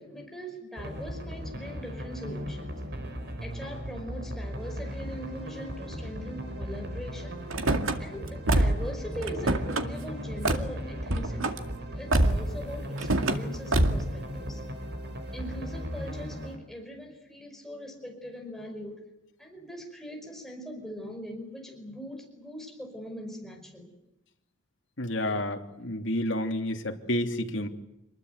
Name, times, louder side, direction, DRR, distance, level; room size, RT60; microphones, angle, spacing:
voice 1, 0.0-2.7 3.4-7.4 8.0-11.6 11.9-14.6 15.3-19.0 19.4-23.9, equal, ahead, 2 dB, 5.3 m, -41 dB
sound 1, 0.8-16.6, equal, 55° right, 4.5 m, -37 dB
Car / Slam, 7.5-8.0 8.5-8.9 9.2-9.9 10.5-10.7 11.1-11.6 12.1-12.5 13.0-13.4 13.7-14.1, right 1 dB, 90° right, 2.2 m, -25 dB
voice 2, 25.0-27.7, left 1 dB, 65° left, 4 dB, 3.1 m, -30 dB
27.5 x 21.0 x 8.2 m, 0.88 s
head